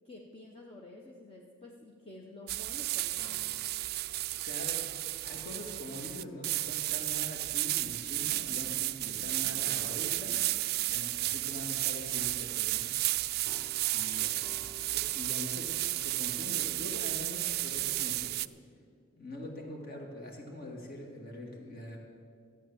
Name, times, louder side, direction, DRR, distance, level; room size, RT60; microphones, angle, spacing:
voice 1, 0.0-3.5 9.1-10.1, left 2 dB, 30° left, -1 dB, 0.9 m, -51 dB
sound 1, 2.5-18.5, right 17 dB, 50° right, 0.3 m, -33 dB
sound 2, 3.2-9.3 9.6-9.9 10.8-11.6 13.4-18.7, right 1 dB, 5° left, 0.6 m, -58 dB
voice 2, 4.4-4.9 5.2-10.4 10.8-12.9 13.9-18.4 19.2-22.0, left 1 dB, 45° left, 1 dB, 2.3 m, -43 dB
14.0 x 8.6 x 7.1 m, 2.1 s
head